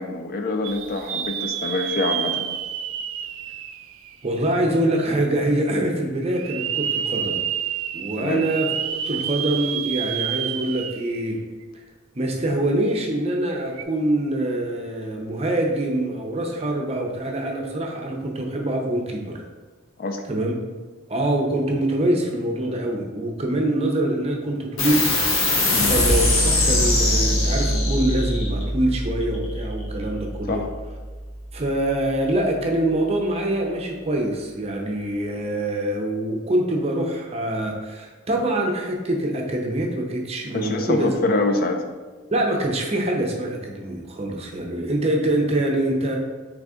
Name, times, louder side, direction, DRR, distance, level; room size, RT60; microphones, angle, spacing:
voice 1, 0.0-2.4 8.2-8.5 20.0-20.2 25.8-25.9 30.5-30.7 40.5-41.8, left 2 dB, 45° left, 5 dB, 0.4 m, -25 dB
sound 1, 0.6-4.6 5.1-5.2 6.3-11.2 11.6-11.7 13.7-13.8, right 10 dB, 80° right, 0.3 m, -29 dB
voice 2, 4.2-7.4 7.9-8.7 9.1-11.4 11.7-11.8 12.1-19.4 20.3-20.5 21.1-25.1 25.8-30.6 31.5-41.1 42.3-46.2, right 1 dB, 30° right, 1 dB, 0.6 m, -24 dB
sound 2, 24.8-31.7, left 1 dB, 80° left, 1.1 m, -23 dB
3.8 x 3.4 x 3.6 m, 1.3 s
head